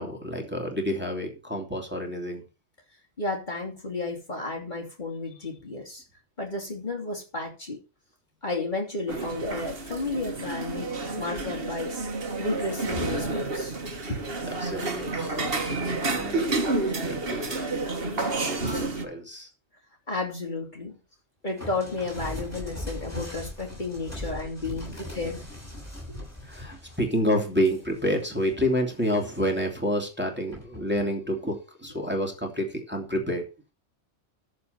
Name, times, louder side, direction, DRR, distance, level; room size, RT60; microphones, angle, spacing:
voice 1, 0.0-2.4 13.9-14.0 14.5-15.3 15.6-19.5 24.2-24.3 24.7-25.2 26.4-33.4, equal, 10° right, 2.7 m, -29 dB
voice 2, 3.2-6.0 6.4-7.8 8.4-11.9 12.4-13.7 14.1-14.2 20.1-21.0 21.4-25.4, left 2 dB, 40° left, 2.9 m, -32 dB
sound 1, 9.1-19.0, right 3 dB, 50° right, 1.8 m, -30 dB
sound 2, 21.6-28.6 29.0-29.7 30.5-30.8, left 1 dB, 10° left, 6.7 m, -40 dB
13.5 x 4.7 x 6.7 m
omnidirectional pair, 1.3 m